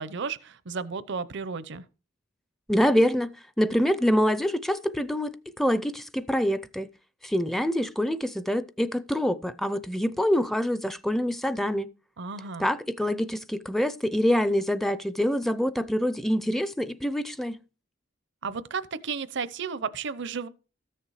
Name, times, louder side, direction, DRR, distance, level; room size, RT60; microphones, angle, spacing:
voice 1, 0.0-1.8 12.2-12.7 18.4-20.5, right 5 dB, 65° right, 0.7 m, -33 dB
voice 2, 2.7-3.3 3.6-5.3 5.6-6.9 7.2-11.9 12.6-17.6, equal, ahead, 0.5 m, -25 dB
13.5 x 6.7 x 4.8 m
head